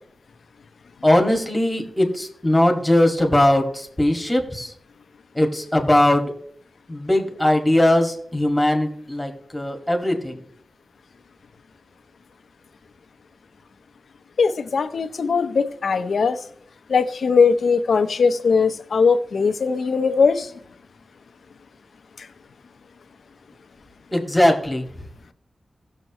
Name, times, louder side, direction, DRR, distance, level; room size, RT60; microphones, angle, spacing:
voice 1, 1.0-4.7 5.3-6.3 6.9-10.4 24.1-24.9, left 1 dB, 10° left, 3 dB, 2.0 m, -20 dB
voice 2, 14.4-16.4 16.9-20.5 22.2-22.3, left 5 dB, 75° left, 10 dB, 0.8 m, -20 dB
17.5 x 6.7 x 3.0 m, 0.63 s
cardioid pair, 70°, 0 cm